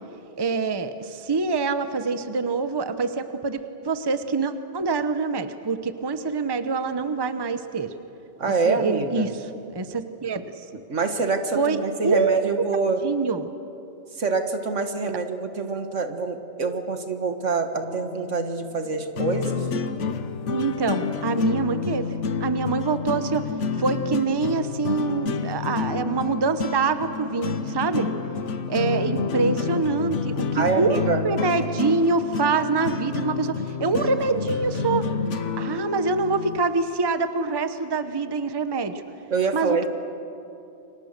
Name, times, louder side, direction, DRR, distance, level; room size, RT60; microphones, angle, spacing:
voice 1, 0.4-7.9 8.4-9.4 9.7-10.6 11.6-11.8 12.0-12.6 13.0-13.5 20.5-22.1 22.4-23.4 23.7-28.1 28.7-35.1 35.6-38.9 39.5-39.9, right 4 dB, 20° right, 10 dB, 0.9 m, -25 dB
voice 2, 8.4-9.3 10.9-13.0 14.2-19.7 30.5-31.3 39.3-39.9, right 4 dB, 70° right, 7 dB, 1.9 m, -26 dB
sound 1, 17.8-36.6, left 5 dB, 65° left, 1.3 m, -29 dB
29.5 x 24.5 x 6.7 m, 2.8 s
omnidirectional pair, 1.3 m